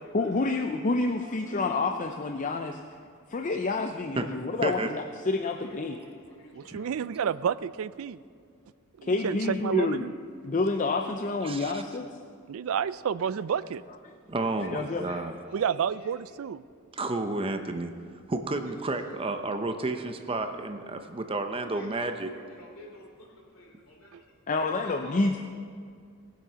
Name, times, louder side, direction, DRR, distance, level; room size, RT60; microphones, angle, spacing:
voice 1, 0.1-2.8 3.3-6.0 9.0-10.0 10.4-12.1 14.7-15.0 24.5-25.4, left 3 dB, 35° left, 5 dB, 0.5 m, -28 dB
voice 2, 1.2-1.7 2.0-2.2 5.5-7.2 14.3-15.2 15.5-16.1 21.7-23.3 23.5-24.1 24.5-25.2, equal, 70° left, -1 dB, 3.1 m, -48 dB
voice 3, 6.5-8.2 9.0-10.1 12.5-13.8 15.5-16.6 24.1-24.2, right 7 dB, 70° right, 18 dB, 0.3 m, -30 dB
voice 4, 11.4-11.8 14.3-15.3 16.9-17.9 18.3-22.3, right 2 dB, 25° right, 7 dB, 0.7 m, -31 dB
19.0 x 7.5 x 5.7 m, 2.2 s
head